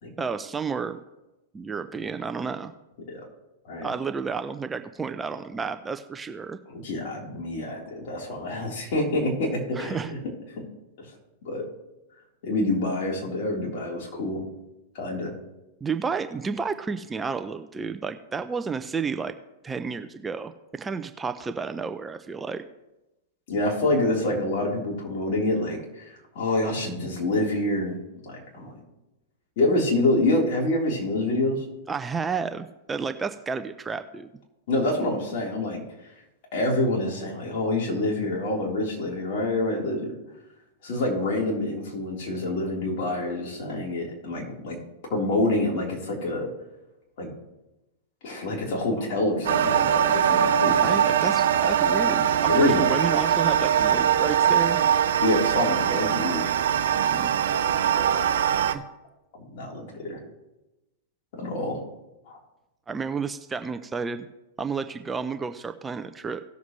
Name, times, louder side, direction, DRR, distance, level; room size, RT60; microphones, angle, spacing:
voice 1, 0.2-1.0 1.5-2.7 3.8-6.6 9.8-10.1 15.8-19.4 19.6-22.6 31.9-34.3 50.8-54.8 57.1-57.3 58.7-58.8 62.9-64.3 64.6-66.4, right 5 dB, 15° right, 9 dB, 0.6 m, -31 dB
voice 2, 6.7-10.2 11.0-11.1 11.4-11.6 12.4-14.4 14.9-15.3 23.5-28.0 28.3-28.7 29.6-31.6 34.7-35.8 36.5-40.1 40.8-44.8 45.1-46.5 47.2-47.3 48.2-51.0 52.5-53.1 55.2-56.4 58.1-58.2 59.5-60.2 61.3-61.8 62.3-62.4, left 2 dB, 55° left, -2 dB, 3.8 m, -27 dB
sound 1, 49.5-58.7, right 9 dB, 75° right, 0.7 m, -22 dB
18.0 x 7.2 x 3.2 m, 0.97 s
hypercardioid pair, 110°, 0 cm